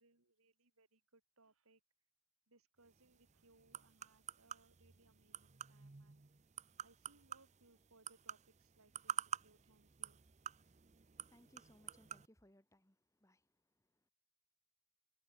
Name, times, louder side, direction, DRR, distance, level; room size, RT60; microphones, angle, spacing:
voice 1, 0.0-1.8 2.5-6.3 6.8-10.2, right 2 dB, 75° right, 3.4 m, -70 dB
sound 1, 2.8-12.3, right 8 dB, 30° right, 0.6 m, -49 dB
voice 2, 11.2-14.1, left 1 dB, 15° left, 2.3 m, -69 dB
head